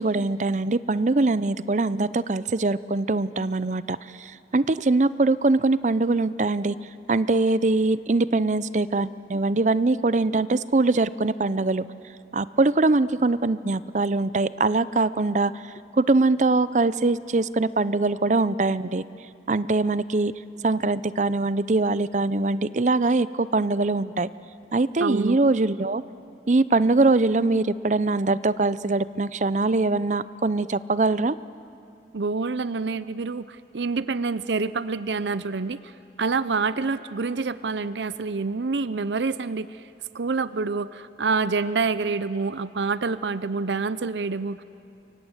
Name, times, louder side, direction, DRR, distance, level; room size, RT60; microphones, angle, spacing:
voice 1, 0.0-6.8 7.1-11.8 12.3-15.5 16.0-19.0 19.5-20.3 20.6-24.3 24.7-26.0 26.5-31.4, right 3 dB, 45° right, 16 dB, 0.6 m, -22 dB
voice 2, 25.0-25.4 32.1-35.8 36.2-39.7 40.1-44.6, right 4 dB, 85° right, 15 dB, 0.6 m, -27 dB
30.0 x 24.0 x 8.0 m, 2.6 s
head